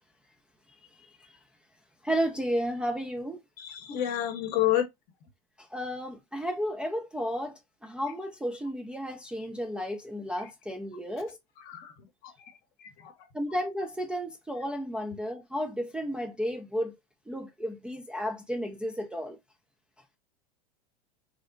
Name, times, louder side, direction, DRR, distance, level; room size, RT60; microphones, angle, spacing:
voice 1, 1.0-1.3 2.0-3.4 5.7-11.4 13.3-17.0 17.3-19.4, equal, 5° right, 0.4 m, -33 dB
voice 2, 3.6-4.9 11.7-11.9 12.2-12.5 12.8-13.1, left 12 dB, 50° left, 0.8 m, -29 dB
3.2 x 2.1 x 2.4 m
hypercardioid pair, 95°, 20 cm